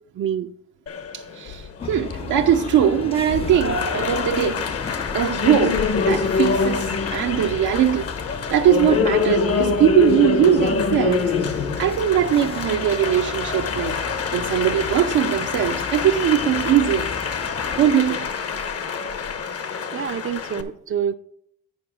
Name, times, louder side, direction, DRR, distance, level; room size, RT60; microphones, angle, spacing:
voice 1, 0.1-0.5 19.9-21.1, right 8 dB, 45° right, 0.5 m, -26 dB
Applause, 0.9-20.6, left 5 dB, 50° left, 1.0 m, -25 dB
voice 2, 1.1-4.8 5.1-8.1 8.5-14.0 14.3-17.1 17.8-18.3, right 10 dB, 85° right, 0.7 m, -20 dB
sound 1, 1.8-18.0, left 5 dB, 20° left, 0.4 m, -36 dB
9.5 x 4.7 x 6.1 m
cardioid pair, 90°, 30 cm